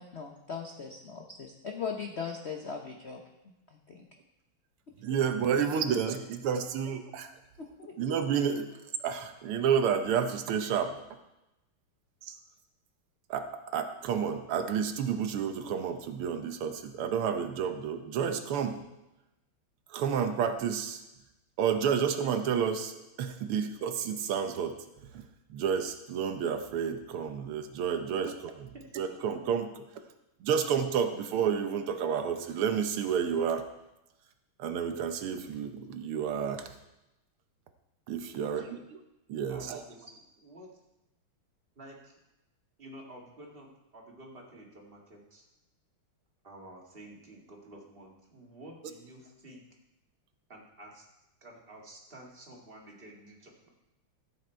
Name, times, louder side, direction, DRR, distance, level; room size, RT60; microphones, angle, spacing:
voice 1, 0.0-3.2 3.9-4.0 5.1-5.2 7.6-7.9, left 6 dB, 55° left, 2 dB, 0.7 m, -39 dB
voice 2, 5.0-6.2 6.4-7.3 8.0-8.8 9.0-11.0 12.2-12.4 13.3-18.8 19.9-21.0 21.6-24.8 25.1-25.3 25.5-28.7 29.0-29.8 30.4-33.6 34.6-36.7 38.1-38.8 39.3-39.8, right 7 dB, 85° right, 7 dB, 1.8 m, -30 dB
voice 3, 5.9-6.2 28.7-28.9 38.4-38.8 39.5-40.7 41.8-42.2 42.8-45.5 46.4-49.6 50.5-51.1 51.4-53.7, right 1 dB, 25° right, -1 dB, 2.0 m, -50 dB
14.0 x 7.8 x 4.5 m, 0.93 s
omnidirectional pair, 2.4 m